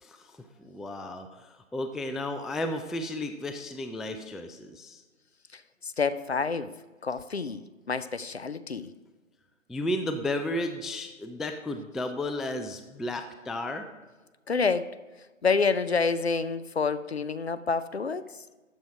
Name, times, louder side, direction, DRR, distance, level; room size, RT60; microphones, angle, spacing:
voice 1, 0.0-5.0 9.7-13.9, left 1 dB, ahead, 7 dB, 0.3 m, -33 dB
voice 2, 5.5-6.7 7.0-8.9 14.5-15.0 15.4-18.3, left 4 dB, 50° left, 15 dB, 0.5 m, -28 dB
12.5 x 7.4 x 5.0 m, 1.3 s
figure-of-eight pair, 160°, 40 cm